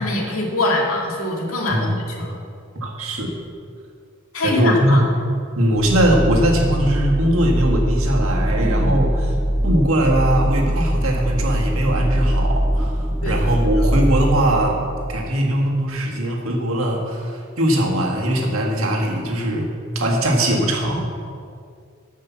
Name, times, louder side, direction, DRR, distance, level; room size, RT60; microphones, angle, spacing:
voice 1, 0.0-2.4 4.3-5.0 8.6-8.9 13.2-13.7, left 2 dB, 75° left, -1 dB, 2.0 m, -24 dB
voice 2, 1.7-2.0 2.7-3.3 4.4-5.1 5.6-9.3 9.6-14.8 15.1-19.7 19.9-21.1, right 1 dB, 70° right, 0 dB, 1.7 m, -20 dB
sound 1, 5.8-15.4, equal, 10° right, 0.3 m, -22 dB
11.5 x 5.5 x 7.1 m, 2.3 s
head